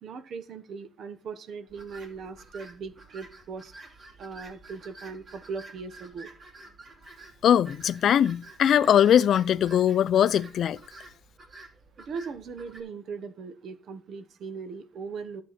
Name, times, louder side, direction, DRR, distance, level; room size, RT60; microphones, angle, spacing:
voice 1, 0.0-3.7 4.2-6.3 12.0-15.4, right 5 dB, 65° right, 1.0 m, -39 dB
Birds in a zoo, 1.7-12.8, right 2 dB, 45° right, 2.7 m, -50 dB
voice 2, 7.4-10.8, left 9 dB, 65° left, 0.4 m, -21 dB
11.0 x 7.5 x 4.2 m
cardioid pair, 90°, 0 cm